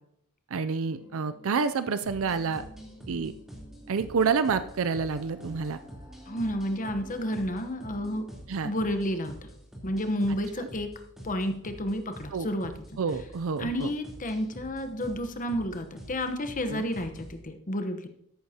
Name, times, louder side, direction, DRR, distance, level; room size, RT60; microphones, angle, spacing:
voice 1, 0.5-2.7 3.1-3.3 3.9-5.8 8.5-8.7 10.6-10.7 12.3-12.5 13.0-13.9 16.7-16.9, right 5 dB, 65° right, 12 dB, 0.5 m, -28 dB
sound 1, 0.8-8.8, equal, 20° right, 2.8 m, -51 dB
sound 2, 2.0-17.4, equal, ahead, 3.4 m, -47 dB
voice 2, 6.3-8.3 8.6-9.3 9.8-10.9 11.2-13.0 13.6-18.1, equal, 35° left, 8 dB, 1.0 m, -31 dB
13.5 x 11.5 x 2.9 m, 0.72 s
head